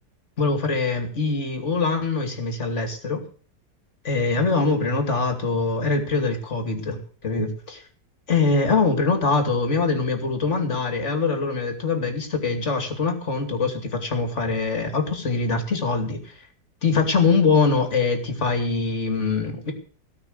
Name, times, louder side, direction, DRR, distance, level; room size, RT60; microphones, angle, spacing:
voice 1, 0.4-3.2 4.0-7.8 8.3-16.3 16.8-19.7, left 4 dB, 40° left, 6 dB, 2.8 m, -23 dB
18.0 x 6.0 x 9.5 m, 0.43 s
omnidirectional pair, 1.9 m